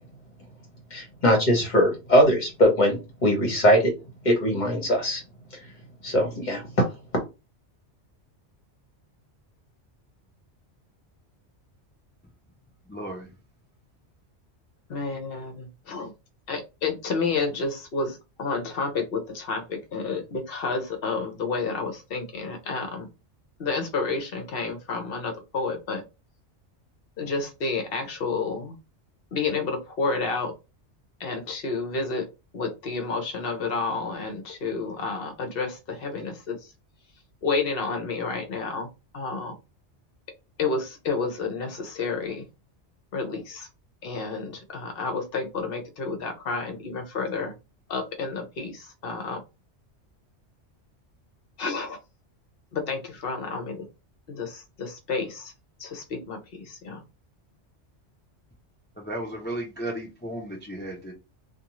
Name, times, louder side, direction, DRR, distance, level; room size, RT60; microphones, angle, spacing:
voice 1, 0.9-3.9 4.2-5.2 6.0-6.9, equal, 40° left, 1.1 m, -21 dB
voice 2, 12.9-13.3 59.0-61.1, right 1 dB, 15° left, 0.4 m, -34 dB
voice 3, 14.9-16.1 16.5-23.1 23.6-26.0 27.2-28.7 29.3-30.5 31.2-32.2 32.5-36.6 37.4-38.9 39.1-39.5 40.6-42.4 43.1-43.7 44.0-47.5 47.9-49.4 51.6-52.0 52.7-53.8 54.3-55.5 55.8-56.4 56.6-57.0, left 4 dB, 60° left, 0.9 m, -30 dB
2.5 x 2.3 x 2.9 m
omnidirectional pair, 1.2 m